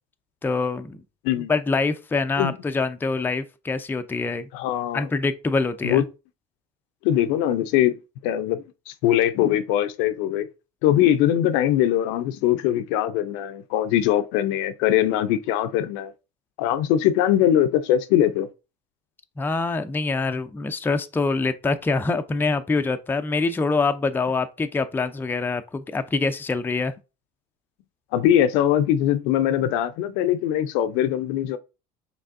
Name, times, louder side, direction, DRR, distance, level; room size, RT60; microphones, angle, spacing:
voice 1, 0.4-1.0 1.5-4.5 4.9-6.0 19.4-26.9, left 3 dB, 10° left, 0.4 m, -25 dB
voice 2, 4.5-5.0 5.8-6.0 7.0-8.0 8.2-10.5 10.8-16.1 16.6-18.5 28.1-31.6, left 11 dB, 70° left, 0.5 m, -21 dB
5.2 x 3.3 x 2.5 m
supercardioid pair, 90°, 20 cm